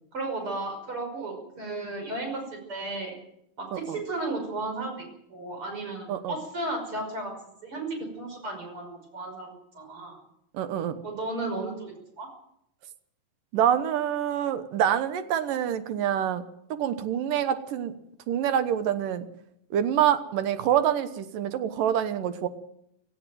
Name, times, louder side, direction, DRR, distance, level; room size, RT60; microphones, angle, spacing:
voice 1, 0.1-3.2 3.6-7.3 7.6-7.9 8.2-10.2 11.0-12.3, right 2 dB, 35° right, 3 dB, 6.5 m, -34 dB
voice 2, 10.5-11.0 13.5-16.4 16.7-17.9 18.3-19.3 19.7-22.5, right 10 dB, 75° right, 11 dB, 2.8 m, -26 dB
17.0 x 16.5 x 9.2 m, 0.77 s
omnidirectional pair, 4.0 m